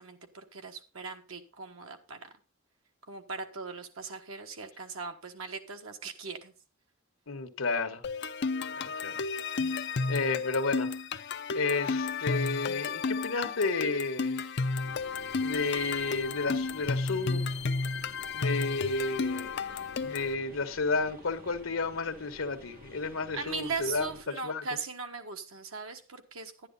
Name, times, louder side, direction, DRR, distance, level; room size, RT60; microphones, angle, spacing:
voice 1, 0.0-2.3 3.1-6.5 19.6-20.2 23.3-26.7, right 4 dB, 80° right, 1.5 m, -39 dB
voice 2, 7.3-8.0 8.8-9.1 9.6-9.8 10.1-10.9 11.5-14.4 15.4-17.4 18.3-19.7 20.0-24.1 24.4-24.6, left 3 dB, 80° left, 1.2 m, -32 dB
sound 1, 8.0-20.3, left 4 dB, 55° left, 0.6 m, -32 dB
sound 2, 14.8-24.2, equal, 45° right, 2.1 m, -51 dB
11.0 x 9.9 x 3.9 m
head